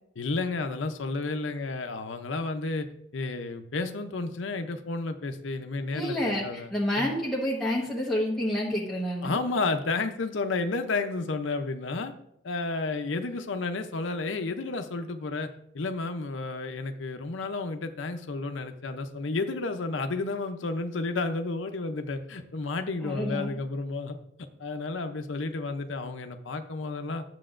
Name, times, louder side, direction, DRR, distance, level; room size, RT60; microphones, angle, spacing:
voice 1, 0.2-2.9 3.1-7.1 9.2-12.1 12.4-15.5 15.7-24.2 24.6-27.2, left 3 dB, 75° left, 7 dB, 0.6 m, -31 dB
voice 2, 5.9-6.4 6.7-9.3 23.0-23.5, left 1 dB, ahead, -7 dB, 1.2 m, -28 dB
11.0 x 7.6 x 2.5 m, 0.73 s
head